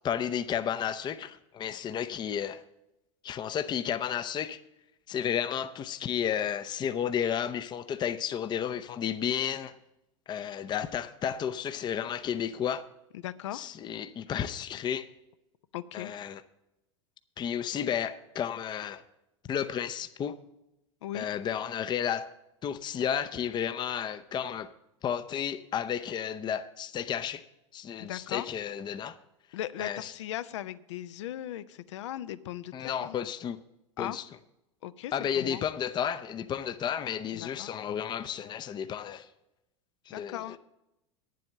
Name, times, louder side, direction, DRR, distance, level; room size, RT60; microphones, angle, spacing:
voice 1, 0.0-2.6 3.2-4.6 5.1-9.7 10.3-12.9 13.5-15.1 15.9-16.4 17.4-19.0 19.5-20.4 21.1-22.3 22.6-24.7 25.0-27.4 27.7-29.2 29.8-30.1 32.7-33.6 34.0-34.2 35.1-39.3 40.1-40.6, left 8 dB, 30° left, 0.6 m, -32 dB
voice 2, 13.2-13.7 15.7-16.1 21.0-21.3 28.1-28.5 29.5-33.2 34.0-34.2 34.8-35.6 37.3-37.7 40.1-40.6, left 12 dB, 70° left, 0.6 m, -38 dB
9.5 x 7.7 x 6.5 m
hypercardioid pair, 90°, 16 cm